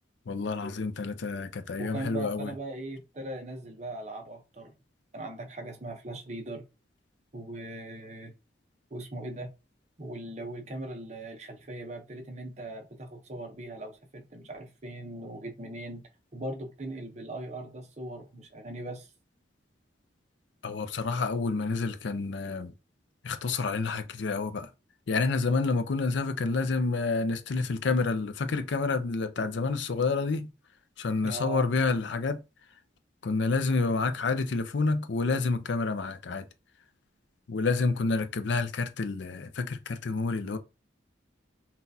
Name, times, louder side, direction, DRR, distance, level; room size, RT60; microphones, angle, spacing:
voice 1, 0.3-2.5 20.6-22.7 23.2-24.7 25.1-30.5 31.0-32.4 33.2-36.4 37.5-40.6, left 4 dB, 75° left, 0.5 m, -29 dB
voice 2, 1.8-4.7 5.1-6.7 7.3-8.3 8.9-9.5 10.0-16.0 16.3-19.1 31.2-31.7, right 1 dB, 35° right, 0.7 m, -39 dB
5.8 x 2.4 x 2.7 m
head